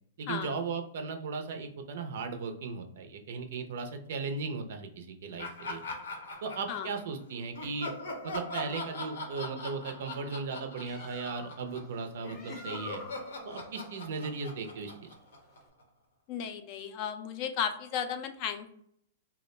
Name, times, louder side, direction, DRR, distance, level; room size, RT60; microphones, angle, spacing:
voice 1, 0.2-5.8 6.4-7.9 8.2-13.0 13.4-15.1, right 4 dB, 65° right, 6 dB, 0.4 m, -37 dB
Laughter, 5.4-7.1 7.5-11.9 12.2-15.8, left 2 dB, 80° left, 0.7 m, -41 dB
Bird, 10.6-15.7, left 2 dB, 20° left, 0.7 m, -49 dB
voice 2, 16.3-18.7, left 8 dB, 45° left, 8 dB, 0.3 m, -34 dB
2.3 x 2.1 x 3.1 m, 0.68 s
hypercardioid pair, 120°, 0 cm